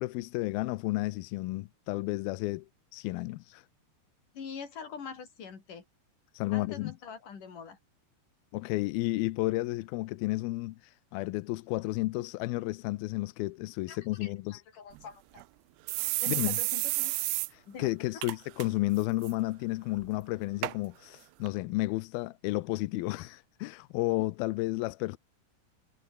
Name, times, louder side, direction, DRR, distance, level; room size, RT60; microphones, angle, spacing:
voice 1, 0.0-2.7 2.9-3.6 6.3-6.9 8.5-10.8 11.1-14.6 16.3-16.6 17.5-25.2, left 20 dB, 80° left, 2.2 m, -32 dB
voice 2, 4.3-5.8 6.5-7.8 13.9-15.5 16.2-17.1 17.7-18.2 24.2-24.3, left 6 dB, 50° left, 5.5 m, -44 dB
sound 1, 14.9-15.0 15.4-15.5 15.9-17.5 17.8-17.9 18.2-18.7 19.0-19.3 20.0-20.1 20.6-20.8 21.5-21.6, right 23 dB, 80° right, 2.5 m, -31 dB
omnidirectional pair, 5.0 m